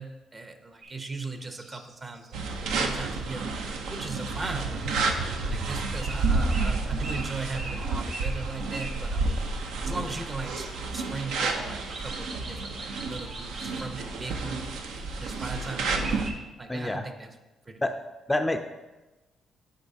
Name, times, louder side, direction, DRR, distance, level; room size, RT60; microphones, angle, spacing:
voice 1, 0.0-2.3 2.7-5.1 5.5-9.5 9.8-10.7 10.9-14.6 15.2-16.3 16.6-17.3 17.7-17.8, right 3 dB, 30° right, 7 dB, 0.7 m, -38 dB
sound 1, 0.8-1.0 1.5-2.4 6.0-6.2 6.5-9.0 11.5-13.9 15.9-16.3, right 2 dB, 65° right, 1.6 m, -41 dB
sound 2, 2.3-16.3, right 3 dB, 85° right, 0.6 m, -30 dB
voice 2, 16.7-17.0 17.8-18.0 18.3-18.6, left 1 dB, 15° left, 6 dB, 0.3 m, -27 dB
10.0 x 4.6 x 2.7 m, 1.1 s
cardioid pair, 90°, 0 cm